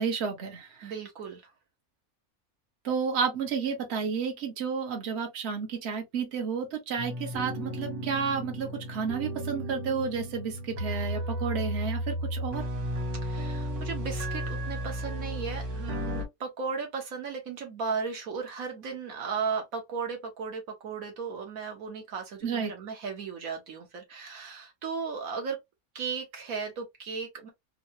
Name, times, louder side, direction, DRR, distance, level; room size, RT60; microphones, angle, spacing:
voice 1, 0.0-0.9 2.8-12.7 22.4-22.7, right 6 dB, 50° right, 1.1 m, -31 dB
voice 2, 0.8-1.4 13.2-25.6 25.9-27.5, right 5 dB, 70° right, 1.3 m, -35 dB
sound 1, 7.0-16.2, equal, 85° right, 1.7 m, -34 dB
3.7 x 2.2 x 2.8 m
omnidirectional pair, 1.6 m